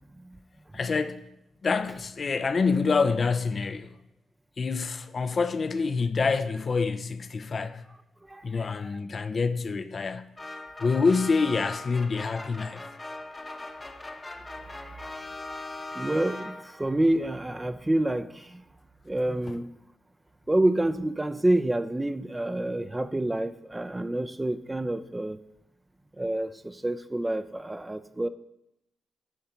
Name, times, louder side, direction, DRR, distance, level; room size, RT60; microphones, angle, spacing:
voice 1, 0.7-1.3 1.6-4.0 4.6-7.8 8.4-10.3 10.8-12.8, left 4 dB, 45° left, 0.6 m, -26 dB
voice 2, 8.2-8.9 14.6-18.6 19.1-19.7 20.5-25.4 26.2-28.3, right 1 dB, 15° right, 0.6 m, -28 dB
sound 1, 10.4-16.9, left 2 dB, 25° left, 1.0 m, -40 dB
11.0 x 3.8 x 5.7 m
supercardioid pair, 50°, 0 cm